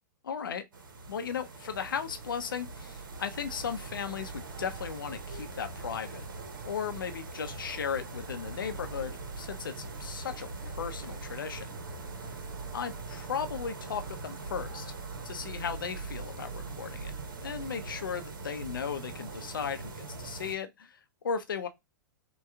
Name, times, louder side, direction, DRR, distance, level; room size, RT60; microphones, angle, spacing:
voice 1, 0.2-0.6 1.1-6.2 6.6-11.7 12.7-14.9 15.2-17.1 17.4-21.7, left 7 dB, 85° left, 0.6 m, -36 dB
sound 1, 0.7-20.5, right 3 dB, 80° right, 0.8 m, -41 dB
2.8 x 2.3 x 3.3 m
hypercardioid pair, 110°, 11 cm